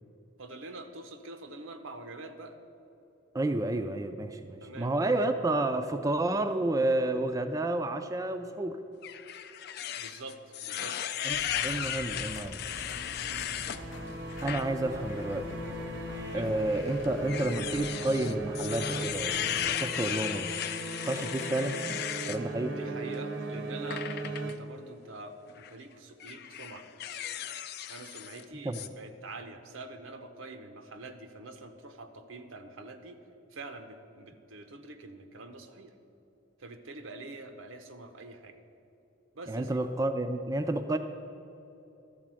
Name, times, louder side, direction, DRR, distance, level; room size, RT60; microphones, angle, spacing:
voice 1, 0.4-2.6 4.6-5.2 9.9-11.0 13.3-13.6 16.3-16.5 22.7-26.9 27.9-33.2 33.5-35.9 36.6-38.6 39.3-39.8, right 2 dB, 90° right, 7 dB, 0.8 m, -45 dB
voice 2, 3.3-8.8 11.2-12.6 14.4-15.6 16.3-20.5 21.0-21.8 22.3-22.8 28.6-28.8 39.5-41.0, right 2 dB, 15° right, 7 dB, 0.3 m, -30 dB
sound 1, 9.0-13.8 14.3-14.6 15.1-15.2 16.3-22.4 23.9-24.5 25.5-25.7 26.2-28.4 28.7-28.9, left 10 dB, 55° left, 0.4 m, -36 dB
Engine, 11.3-19.8, left 1 dB, 70° left, 0.9 m, -45 dB
sound 2, 13.6-25.1, right 2 dB, 60° right, 0.7 m, -38 dB
12.5 x 4.2 x 7.5 m, 2.8 s
head